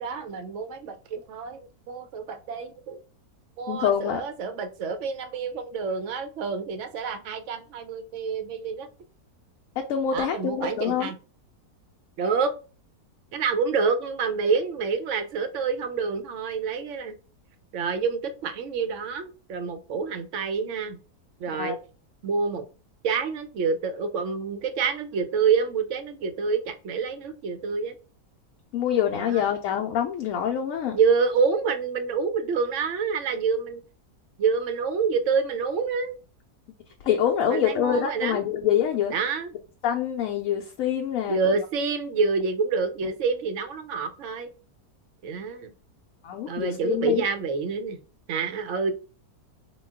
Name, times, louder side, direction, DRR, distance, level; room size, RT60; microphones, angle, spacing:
voice 1, 0.0-3.0 3.6-8.9 10.1-11.1 12.2-12.5 13.3-17.2 17.7-21.0 21.4-21.8 22.2-22.6 23.0-27.9 29.2-29.4 30.9-33.8 34.4-36.2 37.5-38.4 39.1-39.5 41.3-44.5 45.2-45.7 46.5-48.0 48.3-48.9, right 5 dB, 70° right, 0.7 m, -27 dB
voice 2, 3.7-4.2 9.8-11.1 21.5-21.8 28.7-31.0 37.0-39.1 39.8-41.5 46.2-47.2, left 9 dB, 70° left, 0.9 m, -25 dB
3.8 x 2.2 x 3.5 m
omnidirectional pair, 1.7 m